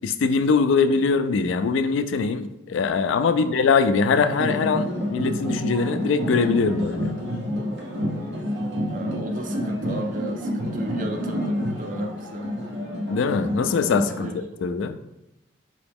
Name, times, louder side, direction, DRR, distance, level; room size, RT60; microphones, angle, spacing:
voice 1, 0.0-7.1 13.1-14.3 14.6-15.0, left 5 dB, 90° left, 10 dB, 0.3 m, -22 dB
sound 1, 4.1-14.3, equal, 70° right, 0.8 m, -29 dB
voice 2, 8.9-12.5 14.2-14.6, right 1 dB, 45° right, 4 dB, 0.5 m, -34 dB
4.5 x 3.0 x 3.5 m, 0.87 s
head